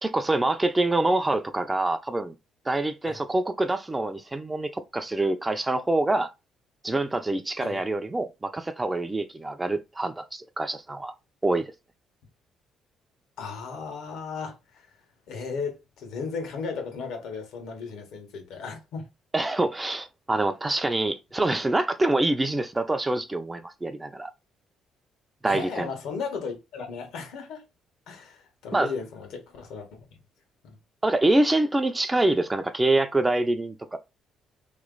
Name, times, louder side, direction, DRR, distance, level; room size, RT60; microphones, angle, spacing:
voice 1, 0.0-2.3 2.7-6.3 6.8-11.1 11.4-11.7 19.3-24.3 25.4-25.9 28.7-28.9 31.0-34.0, right 2 dB, 15° right, 0.5 m, -25 dB
voice 2, 13.4-14.9 15.3-19.1 25.4-27.6 28.1-29.9 30.6-30.8, left 5 dB, 80° left, 1.4 m, -35 dB
3.1 x 2.9 x 3.9 m
cardioid pair, 105°, 0 cm